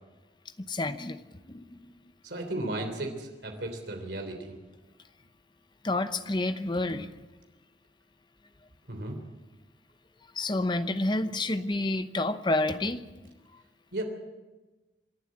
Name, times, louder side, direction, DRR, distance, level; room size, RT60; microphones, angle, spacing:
voice 1, 0.6-1.2 1.5-1.9 5.8-7.1 10.3-13.0, left 2 dB, 25° left, 11 dB, 0.9 m, -29 dB
voice 2, 2.2-4.5 8.9-9.2 13.9-14.0, right 1 dB, 65° right, 4 dB, 3.3 m, -35 dB
27.0 x 11.5 x 8.6 m, 1.2 s
head